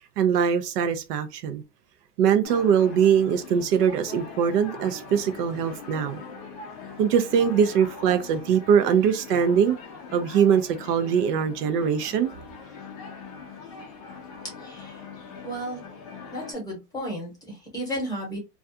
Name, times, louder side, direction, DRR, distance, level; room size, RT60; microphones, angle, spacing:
voice 1, 0.2-1.6 2.2-6.2 7.0-9.8 10.1-12.3, right 7 dB, 70° right, 0.6 m, -22 dB
sound 1, 2.4-16.5, left 5 dB, 25° left, 0.4 m, -42 dB
voice 2, 14.6-15.0 15.4-15.8 16.3-18.4, equal, 10° left, 0.9 m, -33 dB
2.4 x 2.3 x 2.6 m
supercardioid pair, 145°, 49 cm